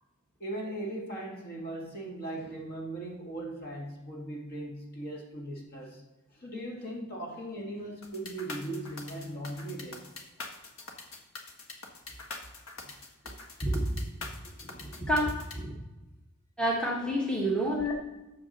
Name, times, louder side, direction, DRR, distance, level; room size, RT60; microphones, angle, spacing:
voice 1, 0.4-6.0 6.3-10.0 17.4-17.5, right 1 dB, 45° left, -1 dB, 2.0 m, -38 dB
sound 1, 8.0-15.6, left 3 dB, 65° left, 1.4 m, -43 dB
voice 2, 14.8-15.7 16.6-17.9, equal, 5° left, -3 dB, 1.2 m, -29 dB
7.1 x 7.0 x 6.5 m, 1.1 s
head